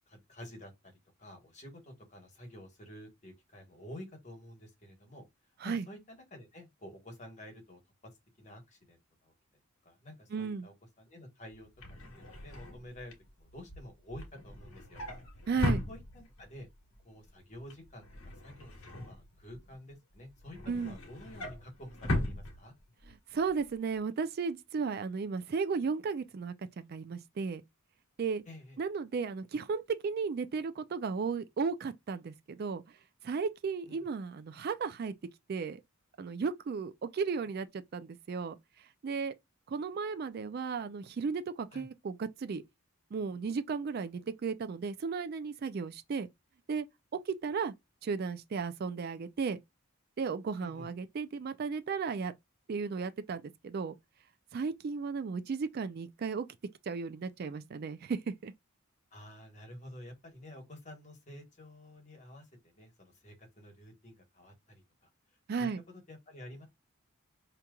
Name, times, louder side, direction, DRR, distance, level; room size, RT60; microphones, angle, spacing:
voice 1, 0.1-0.9 1.2-5.2 5.6-7.8 8.4-9.3 9.8-11.7 12.1-15.0 15.9-16.7 17.0-22.7 28.4-28.8 33.9-34.0 41.7-41.9 50.6-50.9 59.1-65.1 65.6-66.7, left 1 dB, 35° left, 1.2 m, -50 dB
voice 2, 10.3-10.7 15.5-15.8 20.7-21.0 23.3-27.6 28.2-28.4 28.8-32.8 33.2-35.1 35.5-35.8 36.2-38.6 39.0-39.3 39.7-42.6 43.1-46.3 46.7-46.9 47.3-47.7 48.0-49.6 50.2-52.3 52.7-53.9 54.5-56.5 56.9-58.5 65.5-65.8, right 5 dB, 45° right, 0.3 m, -34 dB
Drawer open or close, 11.5-16.6 16.9-17.3 17.5-19.7 20.2-23.1 23.5-23.7 24.0-24.1, left 1 dB, 80° left, 1.2 m, -38 dB
5.0 x 2.9 x 2.3 m
head